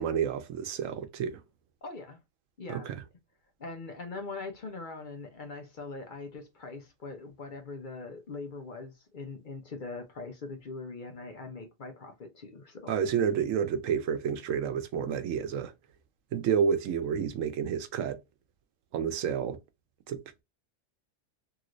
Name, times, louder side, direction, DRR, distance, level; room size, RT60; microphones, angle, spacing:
voice 1, 0.0-1.4 2.7-3.0 12.9-15.7 16.3-18.2 18.9-19.6 20.1-20.2, right 7 dB, 90° right, 1.0 m, -29 dB
voice 2, 1.8-2.2 2.6-2.9 3.6-12.9, left 3 dB, 50° left, 0.7 m, -42 dB
3.0 x 2.9 x 2.5 m
omnidirectional pair, 1.3 m